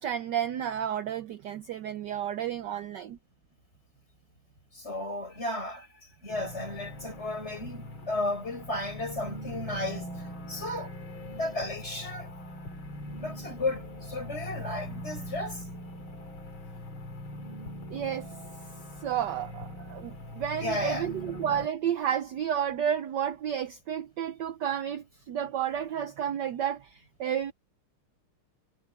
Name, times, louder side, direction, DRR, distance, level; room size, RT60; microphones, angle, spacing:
voice 1, 0.0-3.2 17.9-18.3 19.0-27.5, right 9 dB, 65° right, 1.2 m, -31 dB
voice 2, 4.7-10.9 11.3-12.3 13.2-15.6 20.6-21.1, left 2 dB, 30° left, 6.4 m, -34 dB
sound 1, 6.3-21.7, left 1 dB, 70° left, 3.6 m, -41 dB
omnidirectional pair, 2.4 m